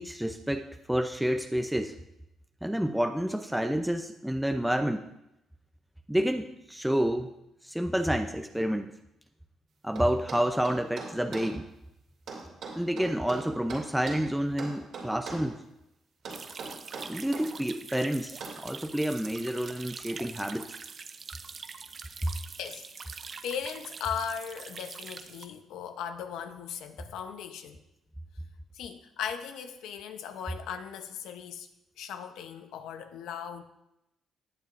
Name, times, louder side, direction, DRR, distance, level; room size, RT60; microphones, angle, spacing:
voice 1, 0.0-2.0 2.6-5.0 6.1-7.3 7.6-8.9 9.8-11.6 12.8-15.6 17.1-20.8 22.2-22.3, equal, 5° right, 0.6 m, -29 dB
sound 1, 10.0-11.5 12.3-14.3 14.6-15.5 16.2-17.5 18.4-18.6, right 4 dB, 70° right, 2.7 m, -40 dB
sound 2, 16.3-25.5, right 5 dB, 45° right, 0.6 m, -44 dB
voice 2, 23.4-27.8 28.7-31.7 32.0-33.6, left 8 dB, 85° left, 0.9 m, -38 dB
18.0 x 6.7 x 2.6 m
cardioid pair, 90°, 0 cm